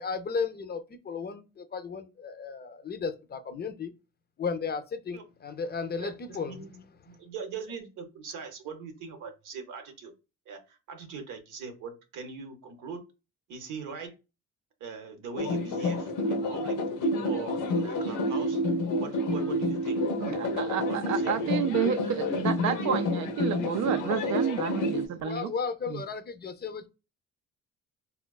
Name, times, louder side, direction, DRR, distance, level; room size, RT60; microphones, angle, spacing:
voice 1, 0.0-3.9 4.4-6.9 25.2-26.9, left 5 dB, 35° left, 0.4 m, -34 dB
voice 2, 6.4-6.7 7.1-10.1 10.5-13.0 13.5-14.1 14.8-16.8 17.2-18.6 19.0-20.0 20.8-21.3, right 5 dB, 85° right, 0.8 m, -41 dB
sound 1, 15.4-25.1, left 1 dB, 90° left, 0.6 m, -29 dB
voice 3, 20.2-25.5 25.9-26.0, right 9 dB, 70° right, 0.4 m, -30 dB
3.6 x 2.2 x 2.2 m
cardioid pair, 90°, 30 cm